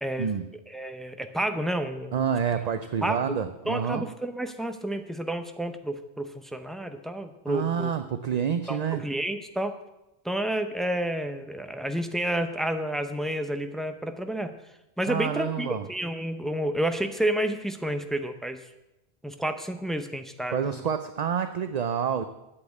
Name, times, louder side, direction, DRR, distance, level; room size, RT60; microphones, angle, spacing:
voice 1, 0.7-2.3 3.0-3.3 3.7-7.9 8.7-9.7 10.2-14.5 15.0-18.6 19.2-20.8, right 1 dB, ahead, 7 dB, 0.6 m, -30 dB
voice 2, 2.1-4.1 7.5-9.0 15.1-15.8 20.5-22.2, right 7 dB, 50° right, 9 dB, 0.6 m, -28 dB
8.5 x 8.5 x 8.3 m, 0.96 s
omnidirectional pair, 1.0 m